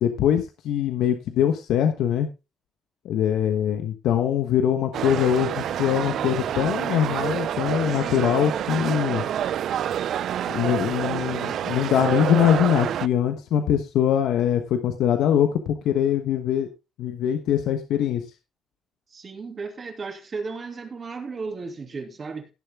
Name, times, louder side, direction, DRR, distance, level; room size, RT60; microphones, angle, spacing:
voice 1, 0.0-2.3 3.0-9.2 10.5-16.7 17.0-18.2, left 9 dB, 85° left, 1.2 m, -23 dB
sound 1, 4.9-13.1, right 10 dB, 70° right, 0.4 m, -27 dB
voice 2, 19.1-22.5, right 4 dB, 40° right, 2.7 m, -34 dB
16.5 x 6.9 x 3.6 m
cardioid pair, 90°, 0 cm